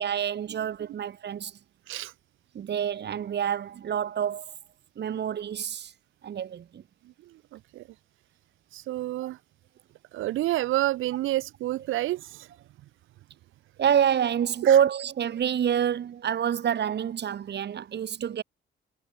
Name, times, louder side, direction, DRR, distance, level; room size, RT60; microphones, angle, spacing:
voice 1, 0.0-1.6 2.5-4.5 5.0-5.9 6.2-6.8 9.2-9.3 13.8-18.4, right 9 dB, 60° right, 3.6 m, -27 dB
voice 2, 7.2-7.9 8.7-9.4 10.1-12.5 14.6-14.8, right 15 dB, 90° right, 4.5 m, -29 dB
cardioid pair, 90°, 20 cm